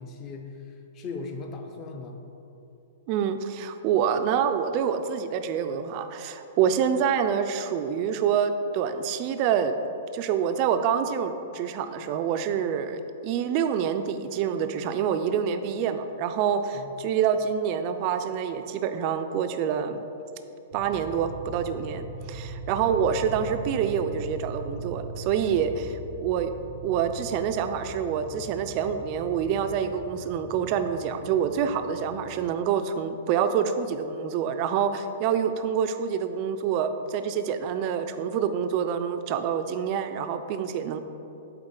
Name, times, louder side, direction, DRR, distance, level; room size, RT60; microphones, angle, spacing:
voice 1, 0.0-2.2 16.7-16.9, left 4 dB, 20° left, 4 dB, 0.5 m, -38 dB
voice 2, 3.1-9.8 10.1-20.1 20.7-26.5 26.8-41.0, right 7 dB, 30° right, 9 dB, 0.3 m, -27 dB
sound 1, 20.7-32.4, right 3 dB, 65° left, 1.0 m, -40 dB
7.9 x 4.0 x 3.8 m, 2.8 s
hypercardioid pair, 170°, 0 cm